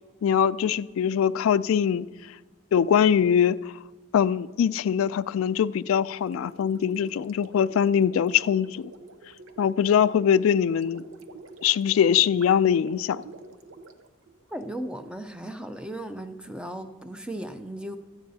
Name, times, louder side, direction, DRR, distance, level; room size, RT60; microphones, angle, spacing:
voice 1, 0.2-2.1 2.7-3.6 4.1-8.9 9.6-11.0 11.6-13.2, left 8 dB, 85° left, 0.3 m, -22 dB
Gurgling, 6.2-14.6, right 3 dB, 80° right, 0.8 m, -46 dB
voice 2, 14.5-18.0, right 1 dB, 5° right, 0.5 m, -36 dB
17.0 x 13.5 x 2.8 m
head